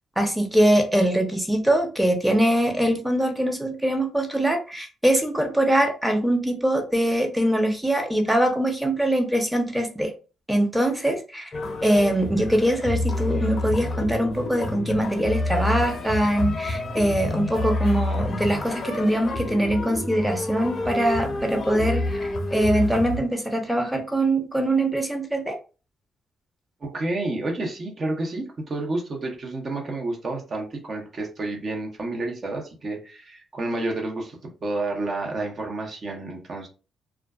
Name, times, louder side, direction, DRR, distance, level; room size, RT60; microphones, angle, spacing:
voice 1, 0.2-10.1 10.5-11.5 11.8-25.6, right 1 dB, 5° right, 4 dB, 0.7 m, -23 dB
sound 1, 11.5-23.2, left 2 dB, 40° left, 0.6 m, -28 dB
voice 2, 26.8-36.7, right 2 dB, 45° right, 1 dB, 0.8 m, -30 dB
2.4 x 2.3 x 2.3 m, 0.34 s
supercardioid pair, 70°, 0 cm